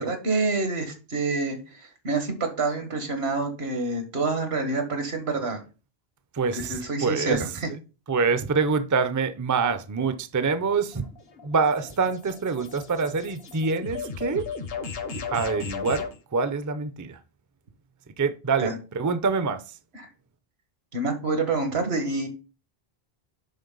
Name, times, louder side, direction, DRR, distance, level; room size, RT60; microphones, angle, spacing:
voice 1, 0.0-5.6 6.7-7.7 18.6-18.8 19.9-20.1 20.9-22.3, right 3 dB, 85° right, 2.0 m, -27 dB
voice 2, 6.3-7.4 8.1-11.0 11.4-14.5 15.1-17.2 18.2-19.8, right 4 dB, 25° right, 0.4 m, -26 dB
sound 1, 10.7-16.2, left 5 dB, 70° left, 1.3 m, -36 dB
10.5 x 4.1 x 3.9 m
omnidirectional pair, 1.0 m